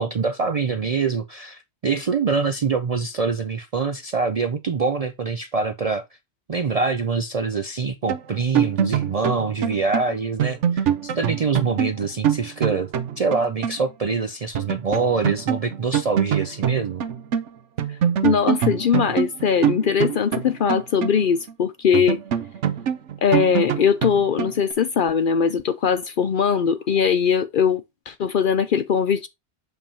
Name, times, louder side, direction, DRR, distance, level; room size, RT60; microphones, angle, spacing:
voice 1, 0.0-6.0 6.5-12.9 13.2-17.0, right 4 dB, 50° right, 0.4 m, -25 dB
sound 1, 8.1-13.8 14.1-14.2 14.5-17.5 17.8-21.5 21.9-24.7, right 9 dB, 80° right, 1.1 m, -24 dB
voice 2, 18.2-22.2 23.2-29.3, left 7 dB, 60° left, 0.6 m, -21 dB
7.1 x 5.4 x 2.7 m
omnidirectional pair, 1.2 m